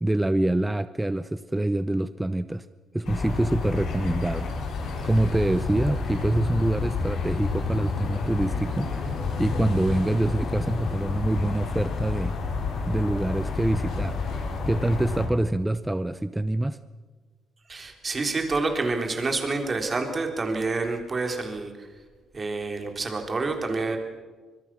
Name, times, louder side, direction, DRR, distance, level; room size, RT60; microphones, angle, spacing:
voice 1, 0.0-2.6 2.9-4.5 5.0-9.1 9.4-12.3 12.9-14.1 14.7-16.8, right 1 dB, 10° right, 13 dB, 0.7 m, -25 dB
sound 1, 3.0-15.3, left 4 dB, 75° left, 5.7 m, -30 dB
voice 2, 17.7-21.9 22.3-24.0, right 3 dB, 35° right, 4 dB, 3.9 m, -28 dB
25.0 x 21.5 x 6.2 m, 1.4 s
cardioid pair, 90°, 0 cm